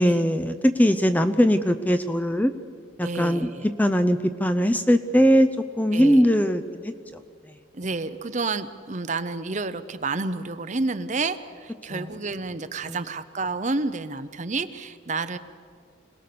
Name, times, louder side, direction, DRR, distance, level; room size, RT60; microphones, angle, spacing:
voice 1, 0.0-2.5 3.0-3.5 3.8-5.5 5.8-6.9 11.9-12.1 12.8-13.0, equal, 10° left, 8 dB, 0.6 m, -20 dB
voice 2, 3.0-3.7 5.9-6.2 7.7-15.4, right 3 dB, 35° right, 12 dB, 0.7 m, -30 dB
26.0 x 19.0 x 6.8 m, 2.1 s
head